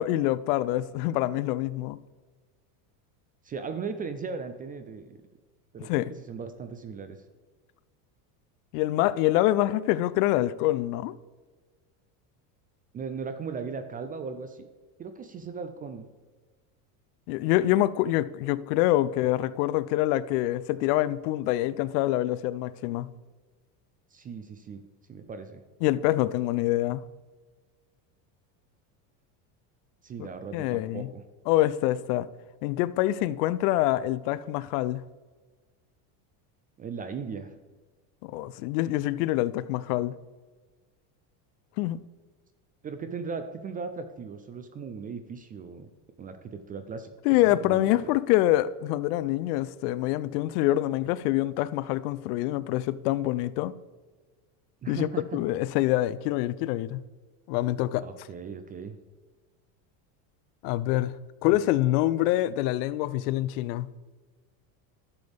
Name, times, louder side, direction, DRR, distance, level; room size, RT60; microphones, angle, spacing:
voice 1, 0.0-2.0 5.8-6.1 8.7-11.2 17.3-23.1 25.8-27.0 30.2-30.3 30.5-31.1 31.5-32.3 32.6-35.0 38.2-40.1 41.8-42.0 47.2-53.7 54.9-57.0 57.5-58.0 60.6-61.2 61.4-63.9, left 15 dB, 75° left, 0.6 m, -26 dB
voice 2, 3.4-5.2 5.7-7.2 12.9-14.7 15.0-16.1 24.1-24.8 25.1-25.6 30.0-31.2 36.8-37.5 42.8-45.9 46.2-48.1 54.8-55.4 58.0-59.0 61.5-61.6, right 5 dB, 20° right, 0.3 m, -38 dB
11.5 x 6.9 x 3.5 m
supercardioid pair, 125°, 47 cm